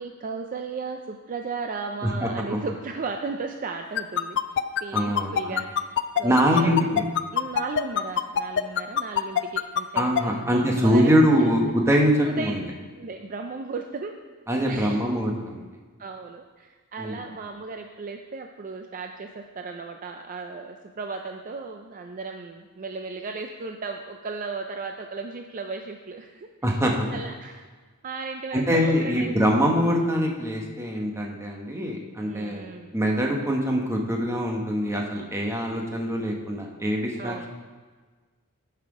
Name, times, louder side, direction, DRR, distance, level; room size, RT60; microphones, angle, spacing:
voice 1, 0.0-7.0 7.3-11.7 12.2-12.6 13.0-14.2 14.7-15.1 16.0-26.8 27.1-27.6 28.0-29.4 32.3-33.0 37.2-37.5, right 4 dB, 40° right, 4 dB, 0.4 m, -35 dB
voice 2, 2.0-2.6 4.9-5.6 6.2-7.0 9.9-12.6 14.5-15.6 17.0-17.2 26.6-27.1 28.5-37.5, equal, 10° right, 0 dB, 1.0 m, -23 dB
sound 1, 4.0-10.2, left 9 dB, 55° left, 0.4 m, -23 dB
9.8 x 5.7 x 4.8 m, 1.4 s
head